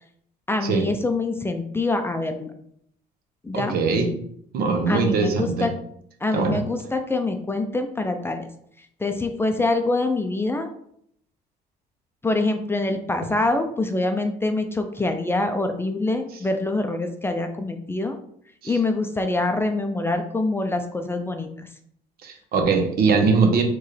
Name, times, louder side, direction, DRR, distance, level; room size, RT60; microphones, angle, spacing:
voice 1, 0.5-2.5 3.4-3.8 4.9-5.7 6.2-8.5 9.0-10.7 12.2-18.2 18.6-21.7, left 2 dB, 15° left, 6 dB, 0.4 m, -25 dB
voice 2, 3.5-4.1 4.5-5.7 6.3-6.6 18.6-18.7 22.2-23.6, right 4 dB, 65° right, 5 dB, 0.9 m, -21 dB
4.5 x 3.1 x 3.2 m, 0.68 s
cardioid pair, 110°, 17 cm